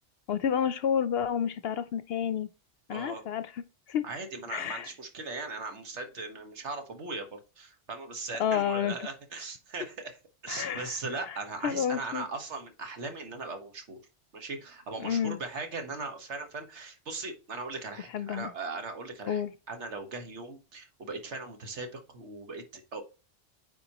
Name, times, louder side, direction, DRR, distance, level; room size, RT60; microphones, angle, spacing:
voice 1, 0.3-2.5 2.9-3.6 3.9-4.0 4.5-4.9 8.4-9.1 10.5-10.9 11.3-11.4 11.6-12.2 15.0-15.4 18.1-18.5 19.3-19.5, left 8 dB, 65° left, 0.7 m, -30 dB
voice 2, 2.9-3.2 4.0-10.2 10.4-14.0 14.3-23.0, right 3 dB, 70° right, 1.7 m, -39 dB
8.9 x 4.5 x 2.9 m
omnidirectional pair, 1.2 m